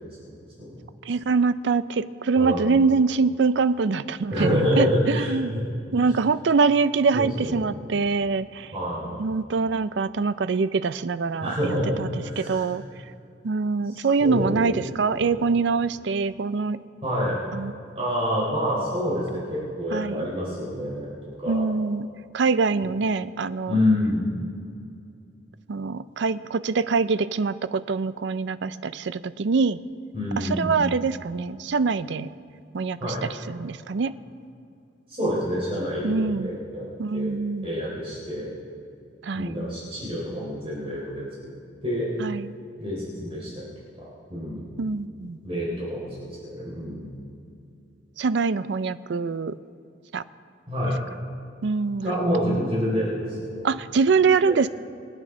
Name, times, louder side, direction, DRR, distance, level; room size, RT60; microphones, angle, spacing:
voice 1, 1.1-4.9 5.1-5.5 5.9-8.7 9.2-12.1 12.4-12.8 13.4-16.8 17.5-17.7 19.9-20.3 21.5-22.1 22.3-23.8 25.7-29.8 30.4-32.3 32.7-34.1 36.0-36.6 37.0-37.7 39.2-39.6 42.2-42.5 44.8-45.4 48.2-49.5 50.1-50.2 51.6-52.1 53.6-54.7, right 4 dB, 70° right, 15 dB, 0.5 m, -24 dB
voice 2, 2.4-2.7 4.3-5.3 5.9-6.1 7.1-7.7 8.7-9.2 11.4-12.7 13.8-14.7 15.1-15.4 17.0-17.4 17.9-21.1 21.4-21.6 23.7-24.3 30.1-30.8 33.0-33.3 35.1-37.3 37.6-38.5 39.3-41.5 41.8-42.1 42.8-43.5 44.0-44.7 45.4-47.2 50.7-51.0 52.0-53.7 54.4-54.6, equal, 30° right, -7 dB, 3.9 m, -27 dB
26.0 x 9.0 x 3.7 m, 2.5 s
head